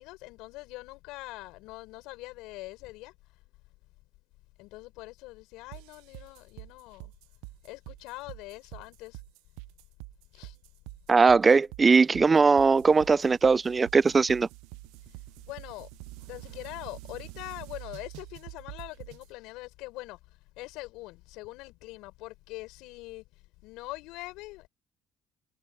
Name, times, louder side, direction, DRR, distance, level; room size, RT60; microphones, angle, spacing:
voice 1, 0.0-3.1 4.6-7.1 7.6-9.2 10.3-10.6 15.4-15.9 16.3-20.2 20.6-23.2 23.6-24.7, left 20 dB, 75° left, 5.2 m, -43 dB
sound 1, 5.7-19.3, right 24 dB, 80° right, 0.8 m, -46 dB
voice 2, 11.1-14.5, right 4 dB, 30° right, 0.4 m, -20 dB
hypercardioid pair, 60°, 0 cm